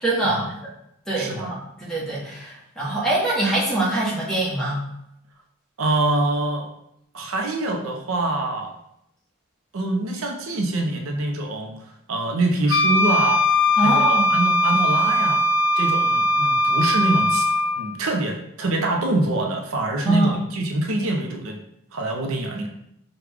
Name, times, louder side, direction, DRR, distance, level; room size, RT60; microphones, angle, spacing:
voice 1, 0.0-0.6 1.1-4.8 13.8-14.3 20.1-20.3, right 2 dB, 5° left, -6 dB, 1.0 m, -24 dB
voice 2, 1.1-1.5 5.8-6.7 7.1-8.7 9.7-11.7 12.1-13.4 13.8-15.4 15.8-17.5 17.8-21.6 21.9-22.7, right 2 dB, 80° right, 2 dB, 0.6 m, -25 dB
Wind instrument woodwind instrument, 12.7-17.8, left 1 dB, 60° left, 0.4 m, -20 dB
4.8 x 2.3 x 3.4 m, 0.79 s
head